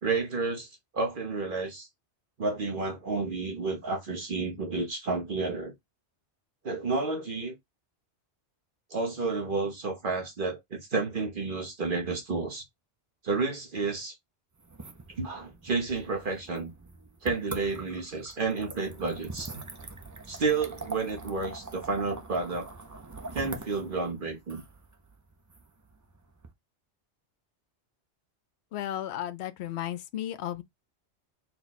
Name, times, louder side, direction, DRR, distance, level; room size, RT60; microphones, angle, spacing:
voice 1, 0.0-1.9 2.4-5.7 6.6-7.5 8.9-12.6 13.2-14.2 15.2-16.7 17.2-19.5 20.3-22.7 23.3-24.6, right 3 dB, 50° right, 1.1 m, -31 dB
sound 1, 14.6-26.5, right 3 dB, 30° right, 0.3 m, -43 dB
voice 2, 28.7-30.6, left 12 dB, 75° left, 0.8 m, -34 dB
4.4 x 2.2 x 4.1 m
omnidirectional pair, 1.2 m